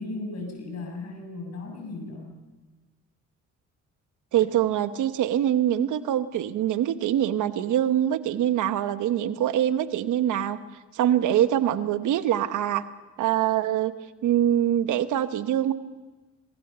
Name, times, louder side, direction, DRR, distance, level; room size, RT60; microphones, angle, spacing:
voice 1, 0.0-2.3, left 2 dB, 60° left, 3 dB, 7.8 m, -36 dB
voice 2, 4.3-10.6 10.9-12.8 13.2-13.9 14.2-15.7, right 11 dB, 80° right, 12 dB, 1.2 m, -24 dB
26.0 x 20.5 x 6.9 m, 1.2 s
cardioid pair, 90°, 30 cm